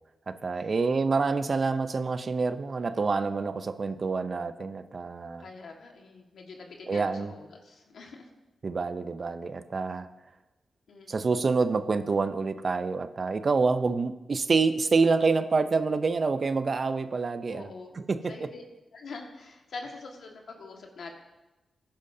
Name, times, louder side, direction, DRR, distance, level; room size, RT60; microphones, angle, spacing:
voice 1, 0.3-5.4 6.9-7.3 8.6-10.1 11.1-17.7 18.1-18.5, right 4 dB, 50° right, 11 dB, 0.6 m, -27 dB
voice 2, 5.4-8.3 10.9-11.4 17.5-18.6 18.9-21.1, left 4 dB, 75° left, 1 dB, 1.7 m, -45 dB
15.0 x 10.0 x 2.8 m, 1.1 s
cardioid pair, 55°, 0 cm